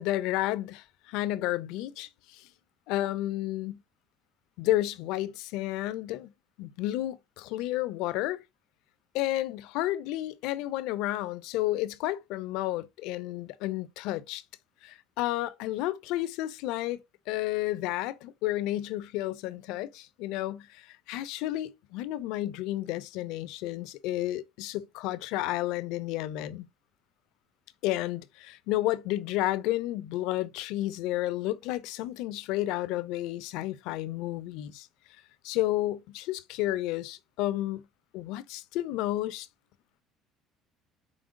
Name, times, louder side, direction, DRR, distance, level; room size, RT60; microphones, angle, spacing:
voice 1, 0.0-2.5 2.9-3.8 4.6-6.3 6.6-8.4 9.1-14.4 14.8-17.0 17.3-26.7 27.8-34.9 35.4-37.8 38.1-39.5, left 15 dB, 75° left, 0.4 m, -31 dB
5.1 x 3.4 x 2.5 m
supercardioid pair, 75°, 0 cm